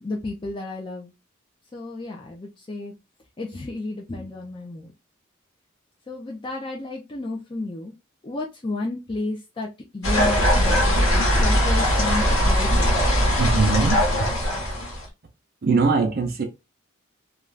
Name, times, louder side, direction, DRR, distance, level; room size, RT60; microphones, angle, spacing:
voice 1, 0.0-1.1 1.7-2.9 3.4-4.9 6.1-8.0 8.2-13.1, left 2 dB, 25° left, 0.4 m, -32 dB
sound 1, 10.0-15.1, equal, 75° left, 1.0 m, -20 dB
voice 2, 13.4-14.3 15.6-16.4, right 4 dB, 50° right, 0.5 m, -22 dB
2.4 x 2.3 x 3.2 m
head